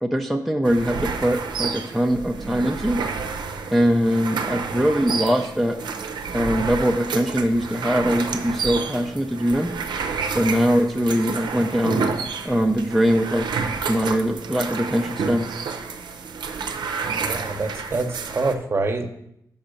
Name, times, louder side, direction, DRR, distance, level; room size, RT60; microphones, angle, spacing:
voice 1, 0.0-3.0 3.7-5.8 6.3-9.7 10.3-12.0 12.4-13.5 13.9-15.5, equal, ahead, 2 dB, 0.4 m, -22 dB
sound 1, 0.6-18.5, right 5 dB, 80° right, 0.6 m, -30 dB
voice 2, 17.2-19.1, right 3 dB, 35° right, 6 dB, 0.8 m, -26 dB
6.0 x 5.5 x 5.1 m, 0.77 s
cardioid pair, 90°, 8 cm